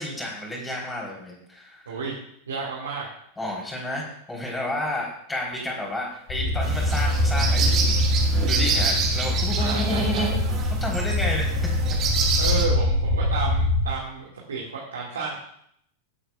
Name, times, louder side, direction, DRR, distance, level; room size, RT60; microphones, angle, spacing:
voice 1, 0.0-2.0 3.4-8.0 8.4-10.4 10.8-11.7, left 1 dB, 10° left, -2 dB, 3.7 m, -31 dB
voice 2, 2.5-3.1 9.6-10.4 12.4-15.4, right 4 dB, 70° right, -4 dB, 2.0 m, -31 dB
sound 1, 6.3-13.9, left 1 dB, 35° left, 2.6 m, -24 dB
sound 2, 6.6-12.7, right 5 dB, 35° right, 2.0 m, -28 dB
18.5 x 8.0 x 2.4 m, 0.70 s
figure-of-eight pair, 90°, 0 cm